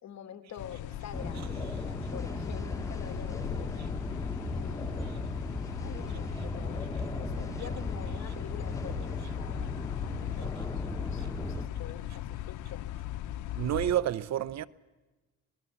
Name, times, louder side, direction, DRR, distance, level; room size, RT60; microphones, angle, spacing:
voice 1, 0.0-3.8 4.5-5.2 5.6-9.7 10.0-12.9, left 9 dB, 65° left, 1.8 m, -47 dB
sound 1, 0.6-14.0, left 13 dB, 85° left, 0.8 m, -38 dB
sound 2, 1.1-11.7, left 1 dB, 10° left, 1.6 m, -37 dB
voice 2, 13.6-14.7, right 12 dB, 60° right, 0.8 m, -29 dB
26.0 x 18.5 x 7.1 m
cardioid pair, 90°, 30 cm